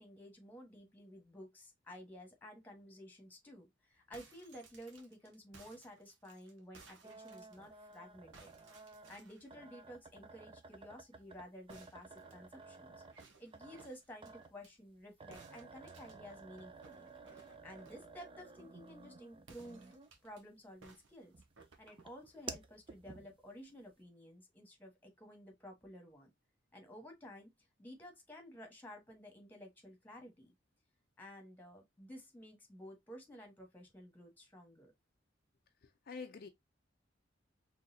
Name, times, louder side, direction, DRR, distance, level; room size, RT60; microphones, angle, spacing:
voice 1, 0.0-8.5 9.1-12.9 13.4-17.1 17.3-21.3 21.8-26.3 26.7-27.5 27.8-30.5 31.2-34.9, equal, 10° left, 1.3 m, -53 dB
sound 1, 3.9-8.0 8.3-9.5 11.7-14.7 15.3-18.1 19.4-20.4 20.8-22.6, right 4 dB, 90° right, 1.0 m, -62 dB
sound 2, 7.0-20.3 20.8-23.6, right 4 dB, 30° right, 0.4 m, -53 dB
voice 2, 35.8-36.5, left 5 dB, 50° left, 0.5 m, -47 dB
4.0 x 3.1 x 2.7 m
head